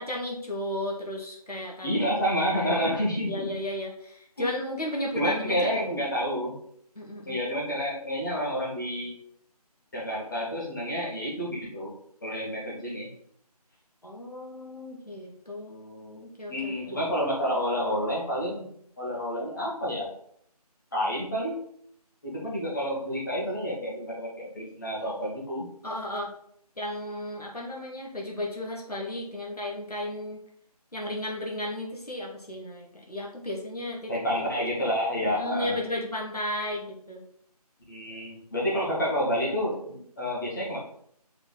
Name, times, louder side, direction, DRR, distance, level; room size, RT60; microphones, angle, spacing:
voice 1, 0.0-1.9 2.7-2.9 3.3-6.0 7.0-7.4 14.0-17.0 25.8-26.3 26.8-30.4 30.9-34.1 35.3-37.2, left 1 dB, 70° left, -1 dB, 2.1 m, -34 dB
voice 2, 1.8-3.5 5.2-6.5 7.3-9.1 9.9-11.9 12.2-13.1 16.5-18.7 19.0-20.1 20.9-21.6 22.2-25.7 34.1-35.8 37.9-40.8, equal, 30° left, -5 dB, 2.1 m, -29 dB
6.7 x 4.4 x 4.1 m, 0.68 s
figure-of-eight pair, 165°, 20 cm